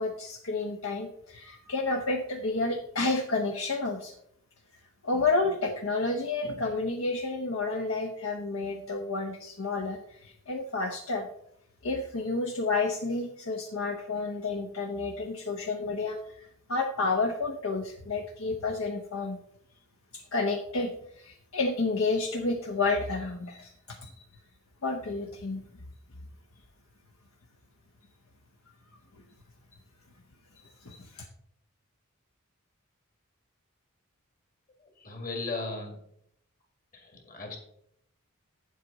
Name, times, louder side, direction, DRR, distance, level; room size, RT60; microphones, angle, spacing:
voice 1, 0.0-4.1 5.0-11.3 11.8-19.4 20.1-24.1 24.8-25.6 30.8-31.2, left 3 dB, 70° left, 3 dB, 0.8 m, -30 dB
voice 2, 34.8-36.0 36.9-37.6, left 3 dB, 40° left, 3 dB, 2.1 m, -37 dB
8.8 x 7.6 x 4.0 m, 0.71 s
head